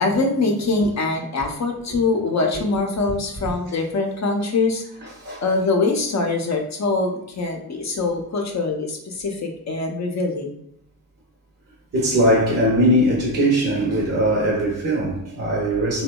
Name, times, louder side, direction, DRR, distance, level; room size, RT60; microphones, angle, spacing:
voice 1, 0.0-4.8 5.4-10.6, left 3 dB, 45° left, 0.6 m, -23 dB
voice 2, 11.9-16.0, equal, 40° right, 0.8 m, -20 dB
2.7 x 2.2 x 2.2 m
supercardioid pair, 45°, 39 cm